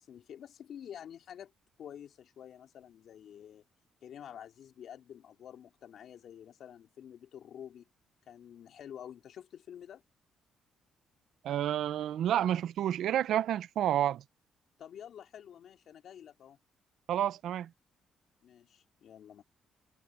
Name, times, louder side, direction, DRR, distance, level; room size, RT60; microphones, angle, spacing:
voice 1, 0.0-1.5 1.8-3.6 4.0-7.8 8.3-10.0 14.8-16.6 18.4-19.4, left 9 dB, 65° left, 3.2 m, -49 dB
voice 2, 11.4-14.2 17.1-17.7, right 11 dB, 75° right, 1.0 m, -30 dB
cardioid pair, 90°, 0 cm